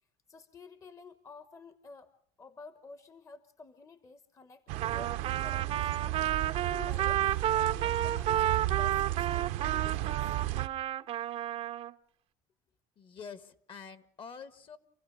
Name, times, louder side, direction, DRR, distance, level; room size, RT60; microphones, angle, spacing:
voice 1, 0.3-2.1 2.4-6.2 6.6-10.7, left 4 dB, 25° left, 12 dB, 1.1 m, -51 dB
sound 1, 4.7-10.7, right 16 dB, 75° right, 0.9 m, -34 dB
Trumpet, 4.8-11.9, right 12 dB, 50° right, 0.7 m, -31 dB
voice 2, 13.0-14.8, left 6 dB, 40° left, 13 dB, 1.6 m, -47 dB
28.0 x 16.0 x 6.6 m, 0.70 s
cardioid pair, 120°, 13 cm